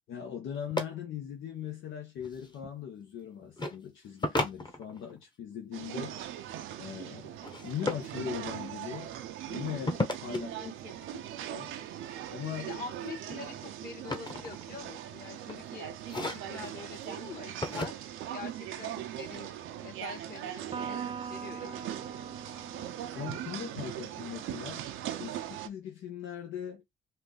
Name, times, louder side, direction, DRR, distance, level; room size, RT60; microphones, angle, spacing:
voice 1, 0.1-6.2 6.8-7.3 7.6-9.1 9.5-10.5 11.5-11.7 12.3-12.7 23.1-24.9 25.2-26.8, left 9 dB, 80° left, 1.3 m, -40 dB
handling picture frame, 0.7-0.8 2.2-2.7 3.6-3.8 4.2-5.2 7.4-8.1 9.9-10.4 12.3-12.7 13.1-15.0 15.4-15.6 16.0-16.7 17.6-17.9, left 2 dB, 20° left, 1.1 m, -34 dB
sound 1, 5.7-25.7, right 11 dB, 90° right, 0.7 m, -40 dB
voice 2, 10.3-11.3 12.6-17.9 18.3-19.5 19.8-21.9, left 5 dB, 50° left, 2.3 m, -46 dB
Electric guitar, 20.7-24.3, right 6 dB, 30° right, 0.4 m, -42 dB
4.5 x 2.7 x 3.9 m
cardioid pair, 90°, 20 cm